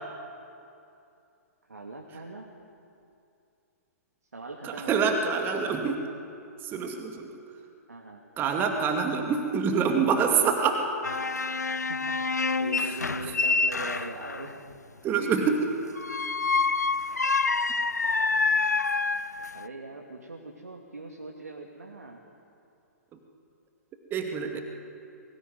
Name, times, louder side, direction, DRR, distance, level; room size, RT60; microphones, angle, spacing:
voice 1, 1.7-2.5 4.3-5.1 7.9-8.2 11.9-14.6 19.5-22.2 24.5-24.6, right 3 dB, 75° right, 0 dB, 3.0 m, -41 dB
voice 2, 4.6-6.0 6.6-7.4 8.4-10.8 12.8-13.0 15.0-15.7 24.1-24.6, right 5 dB, 25° right, 4 dB, 2.4 m, -26 dB
sound 1, 11.0-14.5 16.0-19.7, left 4 dB, 80° left, 0.7 m, -27 dB
22.5 x 20.5 x 9.6 m, 2.6 s
figure-of-eight pair, 115°, 9 cm